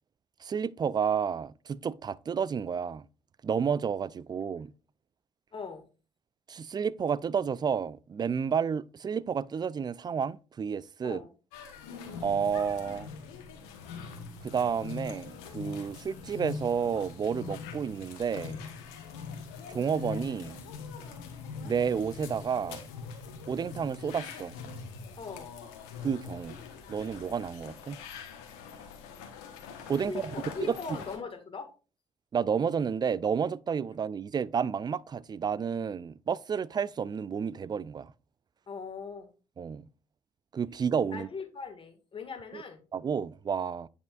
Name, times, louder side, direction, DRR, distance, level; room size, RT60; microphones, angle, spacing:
voice 1, 0.4-3.1 3.4-4.7 6.5-11.2 12.2-13.1 14.4-18.6 19.7-20.6 21.6-22.8 23.5-24.6 26.0-26.6 26.9-28.0 29.9-30.2 30.6-30.8 32.3-38.1 39.6-39.8 40.5-41.3 42.5-42.6 42.9-43.9, right 7 dB, 30° right, 0.4 m, -31 dB
voice 2, 5.5-5.8 11.0-11.3 25.2-25.5 30.1-31.7 38.7-39.3 41.1-42.8, left 5 dB, 40° left, 1.7 m, -40 dB
sound 1, 11.5-31.2, left 5 dB, 75° left, 1.1 m, -43 dB
9.0 x 5.6 x 2.4 m
hypercardioid pair, 45°, 14 cm